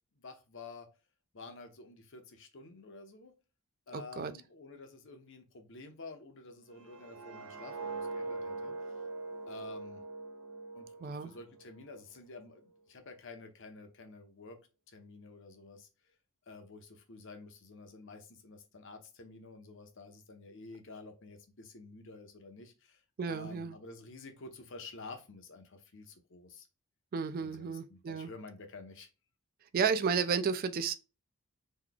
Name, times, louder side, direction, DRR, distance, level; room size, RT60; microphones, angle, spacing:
voice 1, 0.2-0.9 1.3-3.3 3.9-8.9 9.5-10.0 10.7-14.6 14.9-15.9 16.5-23.0 23.3-26.7 27.4-29.1, left 3 dB, 60° left, 0.8 m, -50 dB
voice 2, 3.9-4.3 11.0-11.3 23.2-23.7 27.1-28.3 29.7-31.0, right 6 dB, 40° right, 0.3 m, -32 dB
sound 1, 6.8-11.8 12.2-12.5, right 3 dB, 85° right, 0.8 m, -42 dB
3.8 x 3.2 x 2.2 m
head